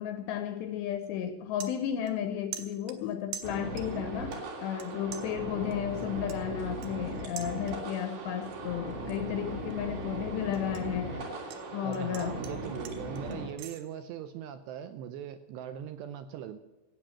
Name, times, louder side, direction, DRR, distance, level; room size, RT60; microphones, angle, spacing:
voice 1, 0.0-11.4 11.7-12.4, left 9 dB, 85° left, 9 dB, 2.5 m, -33 dB
sound 1, 0.7-0.9 1.3-2.3 2.5-4.0 4.3-4.9 5.1-8.0 8.4-8.8 9.2-11.6 11.9-13.8, right 9 dB, 70° right, 2.9 m, -46 dB
sound 2, 3.4-13.5, right 1 dB, 55° right, 4.6 m, -38 dB
voice 2, 11.8-16.6, right 9 dB, 90° right, 10 dB, 2.4 m, -40 dB
15.5 x 8.9 x 7.3 m, 1.2 s
omnidirectional pair, 5.7 m